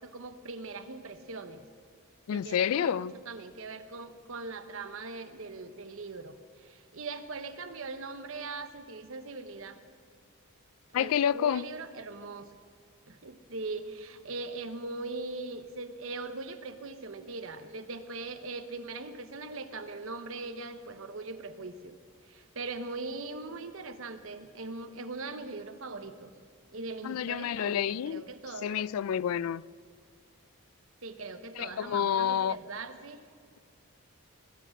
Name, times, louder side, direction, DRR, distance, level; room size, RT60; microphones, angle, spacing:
voice 1, 0.0-1.6 2.3-9.8 10.9-12.5 13.1-21.9 22.3-26.3 26.7-28.9 31.0-33.2, right 3 dB, 65° right, 0.9 m, -40 dB
voice 2, 2.3-3.1 10.9-11.7 27.0-28.2 28.6-29.6 31.6-32.6, left 9 dB, 75° left, 0.3 m, -29 dB
19.5 x 8.9 x 6.4 m
head